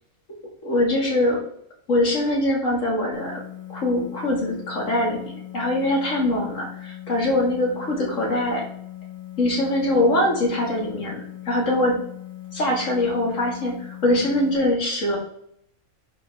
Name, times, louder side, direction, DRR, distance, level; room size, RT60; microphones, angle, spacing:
voice 1, 0.6-1.4 1.9-3.4 3.7-8.7 9.4-12.0 12.5-15.2, left 1 dB, 60° left, -2 dB, 2.8 m, -23 dB
sound 1, 3.1-14.5, left 14 dB, 80° left, 3.1 m, -39 dB
10.5 x 5.8 x 3.6 m, 0.69 s
omnidirectional pair, 1.5 m